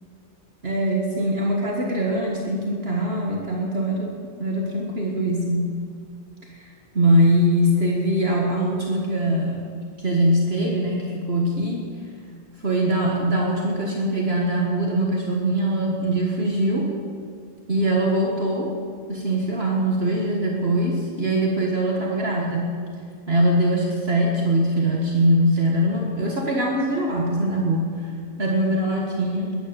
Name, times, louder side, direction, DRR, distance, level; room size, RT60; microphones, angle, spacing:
voice 1, 0.6-4.1 4.4-5.7 6.5-9.6 10.0-11.9 12.6-16.9 17.7-18.7 19.1-22.6 23.3-28.1 28.4-29.5, right 1 dB, 50° right, -2 dB, 1.9 m, -22 dB
21.0 x 9.9 x 6.9 m, 2.2 s
omnidirectional pair, 1.4 m